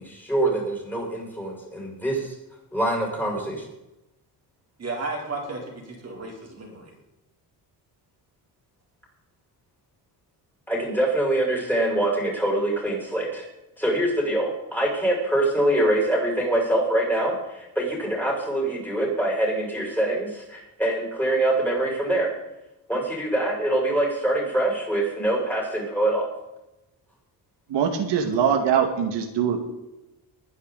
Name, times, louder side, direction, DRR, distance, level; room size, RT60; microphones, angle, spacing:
voice 1, 0.0-2.3 2.7-3.6 10.7-13.4 13.8-22.3 22.9-26.3, right 1 dB, 5° left, -3 dB, 6.5 m, -24 dB
voice 2, 4.8-6.9, right 3 dB, 35° right, 0 dB, 3.7 m, -33 dB
voice 3, 27.7-29.6, right 7 dB, 85° right, 4 dB, 2.2 m, -22 dB
21.0 x 10.0 x 4.1 m, 0.94 s
cardioid pair, 145°, 41 cm